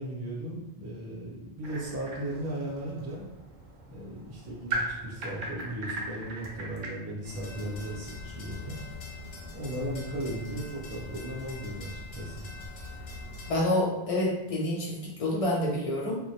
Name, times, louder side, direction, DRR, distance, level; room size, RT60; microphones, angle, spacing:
voice 1, 0.0-3.3 3.9-8.8 9.5-12.5, right 1 dB, 25° right, -5 dB, 0.4 m, -36 dB
sound 1, 1.6-6.9, right 2 dB, 60° right, 0.7 m, -38 dB
sound 2, 7.2-13.5, left 2 dB, 80° left, 0.9 m, -42 dB
voice 2, 13.5-16.2, left 1 dB, 40° left, -3 dB, 0.6 m, -28 dB
2.1 x 2.1 x 2.7 m, 0.92 s
omnidirectional pair, 1.0 m